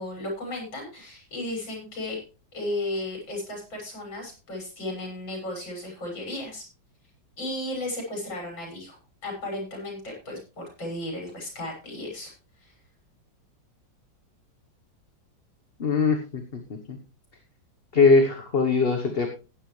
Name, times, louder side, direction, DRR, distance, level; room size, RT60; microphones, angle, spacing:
voice 1, 0.0-2.2 2.5-6.6 7.4-12.3 12.6-12.7, left 1 dB, 90° left, 0 dB, 7.0 m, -34 dB
voice 2, 15.8-16.6 17.9-19.3, left 4 dB, 35° left, 5 dB, 1.2 m, -21 dB
15.0 x 10.5 x 3.2 m, 0.31 s
omnidirectional pair, 2.0 m